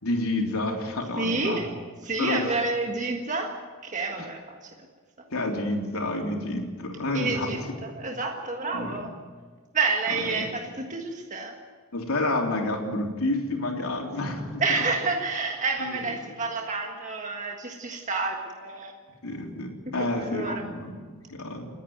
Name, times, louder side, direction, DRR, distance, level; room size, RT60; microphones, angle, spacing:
voice 1, 0.0-1.6 2.2-2.5 5.3-7.5 8.7-9.0 10.1-10.5 11.9-14.6 15.8-16.0 19.2-21.7, left 2 dB, 85° left, 0 dB, 3.6 m, -29 dB
voice 2, 1.2-1.7 2.0-4.7 7.1-9.1 9.7-11.5 14.6-18.9 19.9-20.7, right 3 dB, 35° right, 2 dB, 1.6 m, -29 dB
29.5 x 10.0 x 9.3 m, 1.5 s
head